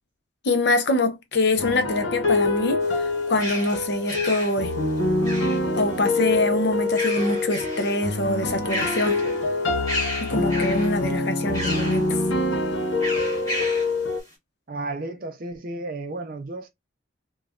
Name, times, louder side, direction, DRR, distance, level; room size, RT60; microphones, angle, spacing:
voice 1, 0.4-2.8 3.3-4.7 5.8-9.2 10.2-12.2, left 2 dB, 55° left, 0.6 m, -24 dB
sound 1, 1.6-14.2, left 2 dB, 80° left, 0.9 m, -25 dB
sound 2, 2.8-5.9 6.8-8.1 8.4-9.5 9.9-11.0 11.5-12.1 13.0-14.0, left 1 dB, 20° left, 1.6 m, -32 dB
voice 2, 14.7-16.7, right 2 dB, 45° right, 0.5 m, -33 dB
3.0 x 2.2 x 2.4 m
head